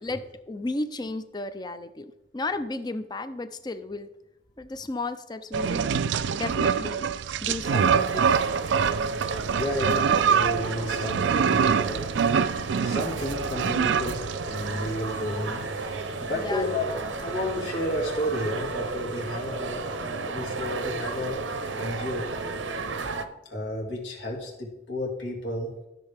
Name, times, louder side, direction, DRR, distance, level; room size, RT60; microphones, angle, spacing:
voice 1, 0.0-4.1 4.6-5.9 6.3-7.0 7.4-8.3 16.4-16.7, left 2 dB, 20° left, 11 dB, 0.5 m, -33 dB
sound 1, 5.5-15.0, right 7 dB, 75° right, 0.3 m, -25 dB
sound 2, 7.6-23.3, right 3 dB, 90° right, 0.8 m, -33 dB
voice 2, 9.5-12.1 12.8-16.8 17.2-21.4 21.7-22.2 23.4-25.7, left 1 dB, 75° left, -1 dB, 2.5 m, -32 dB
13.0 x 6.6 x 3.5 m, 0.93 s
head